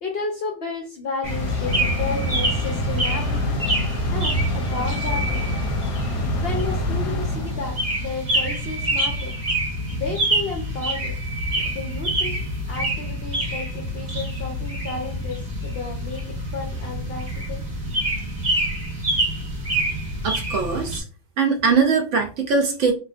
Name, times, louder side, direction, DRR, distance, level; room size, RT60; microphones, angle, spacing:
voice 1, 0.0-3.6 4.1-5.6 6.4-9.3 9.9-11.2 11.5-12.4 12.7-17.6, left 4 dB, 60° left, 2 dB, 0.6 m, -32 dB
sound 1, 1.2-8.0, left 1 dB, 90° left, 1.1 m, -26 dB
sound 2, 1.2-21.0, right 1 dB, 35° right, 0.8 m, -27 dB
sound 3, 2.0-3.3 4.3-6.1 8.1-10.2 10.7-12.2, right 2 dB, 5° left, 0.4 m, -37 dB
voice 2, 20.2-21.0 21.4-22.9, right 5 dB, 70° right, 4 dB, 0.8 m, -21 dB
2.9 x 2.3 x 2.4 m, 0.34 s
omnidirectional pair, 1.5 m